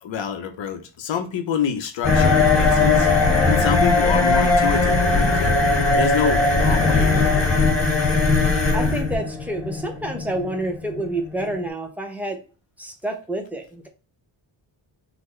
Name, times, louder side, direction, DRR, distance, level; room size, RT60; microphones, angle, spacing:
voice 1, 0.0-5.5 5.9-7.4, left 8 dB, 75° left, 0.7 m, -27 dB
sound 1, 2.0-11.6, left 3 dB, 30° left, 1.7 m, -19 dB
voice 2, 8.7-12.4 12.8-13.9, right 1 dB, 5° right, 0.5 m, -28 dB
3.9 x 2.0 x 3.1 m
wide cardioid pair, 180°, 46 cm